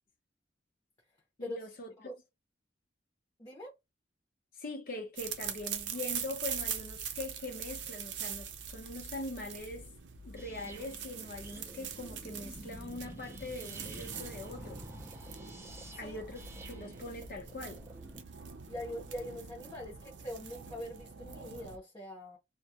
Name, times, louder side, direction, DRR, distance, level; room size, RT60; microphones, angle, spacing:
voice 1, 1.4-2.1 4.6-9.9 10.2-14.8 16.0-16.4 16.7-17.9, left 2 dB, 50° left, 0.8 m, -42 dB
voice 2, 3.4-3.7 15.9-16.2 18.6-22.4, left 1 dB, 25° left, 0.8 m, -43 dB
sound 1, 5.2-21.8, right 7 dB, 75° right, 0.5 m, -43 dB
sound 2, 10.4-18.2, right 1 dB, 15° right, 0.5 m, -50 dB
2.3 x 2.2 x 2.7 m
head